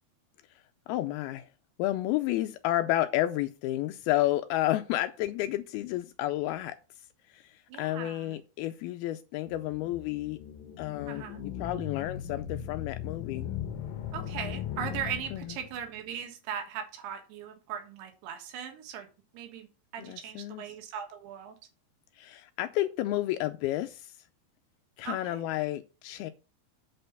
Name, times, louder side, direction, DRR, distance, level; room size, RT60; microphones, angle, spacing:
voice 1, 0.9-1.5 1.8-6.8 7.3-10.4 10.8-13.6 15.3-15.6 20.0-20.6 22.2-24.2 25.0-26.3, left 15 dB, 90° left, 2.2 m, -31 dB
voice 2, 7.7-8.4 11.1-11.4 14.1-19.1 19.3-19.7 19.9-21.6 25.0-25.4, right 8 dB, 75° right, 3.5 m, -39 dB
sound 1, 9.5-15.9, left 9 dB, 70° left, 2.2 m, -38 dB
8.4 x 4.4 x 6.6 m
omnidirectional pair, 5.0 m